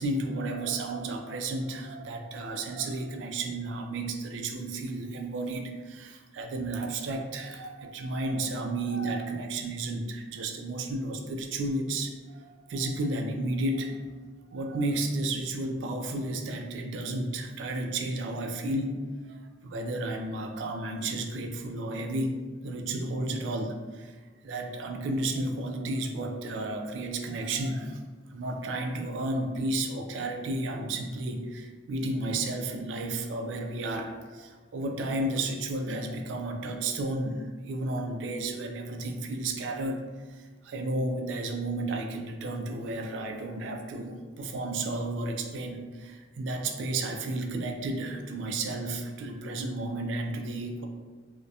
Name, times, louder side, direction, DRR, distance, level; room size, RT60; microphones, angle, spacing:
voice 1, 0.0-14.1 14.5-24.1 24.4-28.0 28.3-50.9, right 2 dB, 80° right, 4 dB, 0.3 m, -32 dB
2.3 x 2.1 x 2.7 m, 1.4 s
head